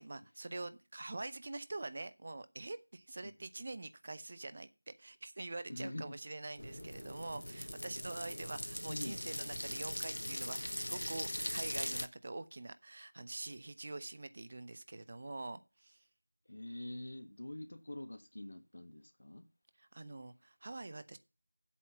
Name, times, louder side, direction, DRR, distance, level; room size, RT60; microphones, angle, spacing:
voice 1, 0.0-16.0 19.8-21.2, right 2 dB, 30° right, 0.6 m, -45 dB
voice 2, 5.7-6.1 8.9-9.2 16.5-19.5, left 1 dB, 50° left, 1.3 m, -45 dB
sound 1, 6.6-12.1, left 1 dB, 85° left, 1.1 m, -40 dB
8.3 x 7.9 x 7.0 m
figure-of-eight pair, 175°, 0 cm